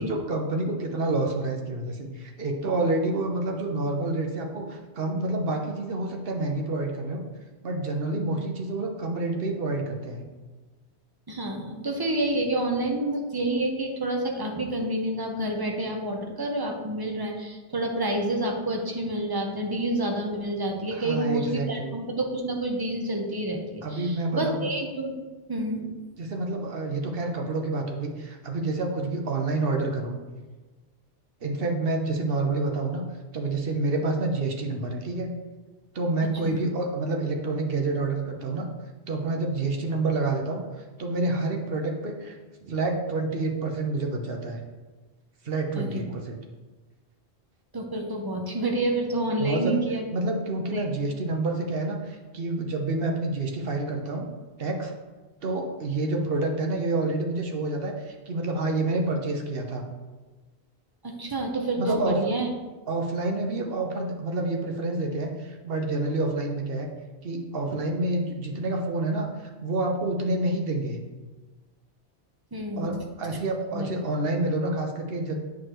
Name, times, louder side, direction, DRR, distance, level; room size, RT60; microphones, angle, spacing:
voice 1, 0.0-7.2 7.6-10.2 20.9-21.9 23.8-24.7 26.2-30.2 31.4-33.0 33.3-35.3 35.9-38.7 39.1-40.6 41.0-42.3 42.6-44.6 45.4-46.4 49.4-49.7 50.1-54.3 54.6-54.9 55.4-59.8 61.8-62.2 62.9-66.9 67.2-71.0 72.8-75.4, right 2 dB, 60° right, 2 dB, 1.0 m, -28 dB
voice 2, 11.3-25.1 25.5-26.0 36.4-36.6 45.8-46.0 47.7-50.0 50.7-50.8 61.0-62.5 72.5-73.1 73.7-73.9, right 1 dB, 25° right, 2 dB, 0.8 m, -28 dB
8.4 x 4.8 x 3.0 m, 1.3 s
omnidirectional pair, 1.1 m